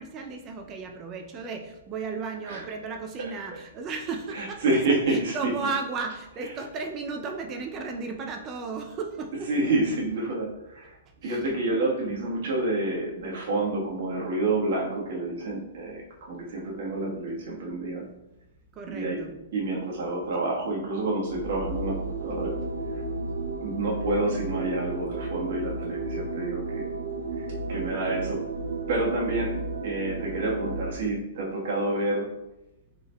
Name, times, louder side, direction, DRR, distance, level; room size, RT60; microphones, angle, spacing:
voice 1, 0.0-4.7 5.1-9.5 11.2-11.4 18.8-19.4, right 4 dB, 25° right, 4 dB, 0.4 m, -34 dB
voice 2, 4.3-5.5 9.5-10.9 11.2-18.0 18.9-22.5 22.9-23.0 23.6-26.9 27.4-28.4 28.9-32.3, right 2 dB, 60° right, -3 dB, 1.3 m, -28 dB
sound 1, 21.3-30.9, right 3 dB, 90° right, 0.4 m, -33 dB
4.3 x 3.8 x 2.2 m, 0.95 s
hypercardioid pair, 135°, 0 cm